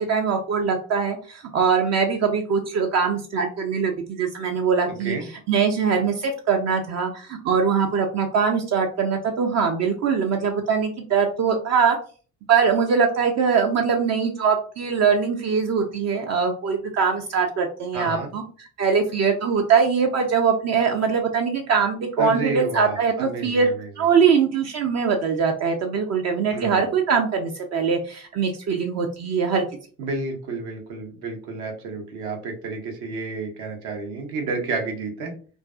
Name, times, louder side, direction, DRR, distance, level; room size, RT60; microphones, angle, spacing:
voice 1, 0.0-5.2 5.5-12.0 12.5-18.4 18.8-23.7 24.0-29.6, right 6 dB, 40° right, 3 dB, 0.4 m, -22 dB
voice 2, 4.9-5.2 17.9-18.3 22.2-24.1 26.5-26.9 30.0-35.3, right 3 dB, 65° right, 3 dB, 0.8 m, -31 dB
2.4 x 2.2 x 2.3 m, 0.40 s
figure-of-eight pair, 45°, 42 cm